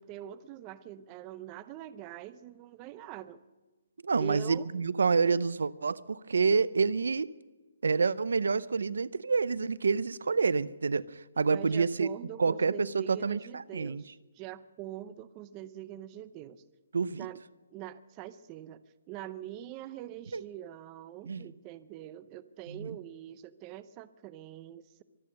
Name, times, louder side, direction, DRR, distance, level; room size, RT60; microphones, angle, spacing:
voice 1, 0.0-3.4 4.2-4.7 11.5-14.1 14.4-16.6 17.1-17.4 17.7-18.8 19.1-25.0, right 12 dB, 20° right, 15 dB, 0.6 m, -44 dB
voice 2, 4.0-7.3 7.8-12.1 12.4-14.0 16.9-17.3 20.3-20.4 21.2-21.5 22.7-23.0, right 4 dB, 85° right, 19 dB, 0.6 m, -28 dB
24.0 x 8.6 x 6.5 m, 1.2 s
hypercardioid pair, 165°, 0 cm